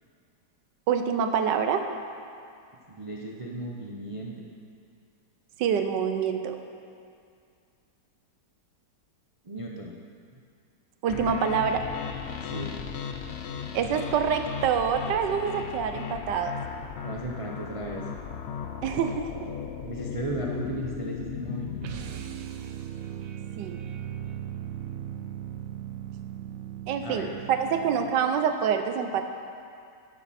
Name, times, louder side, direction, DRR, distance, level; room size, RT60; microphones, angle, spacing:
voice 1, 0.9-1.9 5.6-6.6 11.0-11.9 13.7-16.6 18.8-19.5 23.6-23.8 26.9-29.2, right 7 dB, 80° right, 7 dB, 1.4 m, -26 dB
voice 2, 2.9-4.5 9.4-9.9 12.4-12.7 17.0-18.0 19.8-22.2 27.0-27.4, right 1 dB, 40° right, -1 dB, 0.4 m, -36 dB
sound 1, 11.1-21.9, left 7 dB, 75° left, 0.6 m, -36 dB
sound 2, 21.8-28.3, right 10 dB, 65° right, 0.9 m, -38 dB
11.5 x 11.0 x 4.2 m, 2.4 s
omnidirectional pair, 1.9 m